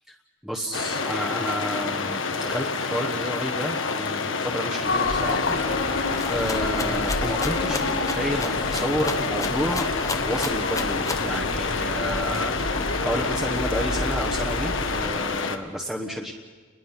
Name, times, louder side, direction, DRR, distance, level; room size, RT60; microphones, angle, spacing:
voice 1, 0.4-5.6 5.8-9.9 10.2-16.3, equal, ahead, -1 dB, 1.1 m, -31 dB
sound 1, 0.7-15.6, left 4 dB, 70° left, 1.4 m, -28 dB
sound 2, 4.8-15.0, left 2 dB, 90° left, 3.4 m, -29 dB
Rattle (instrument), 6.1-11.3, left 3 dB, 15° left, 1.0 m, -34 dB
29.5 x 21.5 x 5.9 m, 1.5 s
head